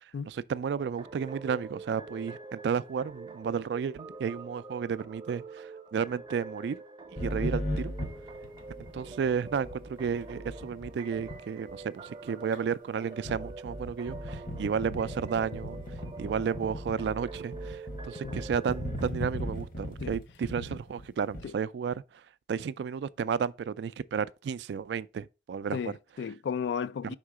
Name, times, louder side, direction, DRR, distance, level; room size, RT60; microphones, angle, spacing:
voice 1, 0.0-6.8 7.2-7.9 8.9-15.8 16.2-22.2 22.5-25.8, right 6 dB, 75° right, 0.3 m, -32 dB
sound 1, 0.7-19.0, right 3 dB, 25° right, 0.5 m, -46 dB
sound 2, 7.2-10.9 11.1-11.4 11.7-11.8 12.2-12.3 12.5-12.6 13.1-21.4, equal, 50° left, 1.0 m, -38 dB
voice 2, 25.7-27.1, left 6 dB, 75° left, 0.3 m, -34 dB
5.5 x 3.7 x 4.8 m
head